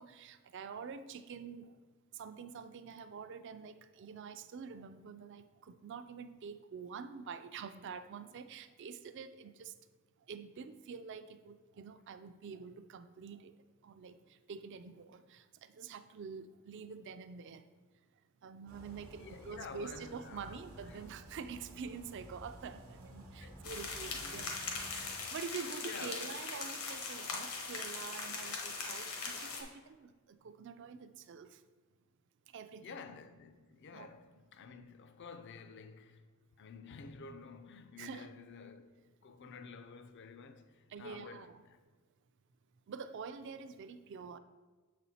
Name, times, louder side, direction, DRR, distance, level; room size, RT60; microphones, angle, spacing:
voice 1, 0.0-1.7 2.1-9.7 10.3-13.5 13.8-14.2 14.5-17.6 18.4-24.6 24.9-31.6 32.5-33.0 33.9-34.1 38.0-38.3 40.9-41.6 42.9-44.4, right 6 dB, 55° right, 0.4 m, -47 dB
sound 1, 18.7-25.1, right 1 dB, 80° right, 0.9 m, -53 dB
voice 2, 19.2-21.0 23.4-23.6 24.2-24.5 25.8-26.3 32.8-36.2 36.6-41.8, left 5 dB, 55° left, 0.4 m, -51 dB
sound 2, 23.6-29.6, left 4 dB, 80° left, 1.1 m, -40 dB
7.0 x 4.2 x 4.2 m
head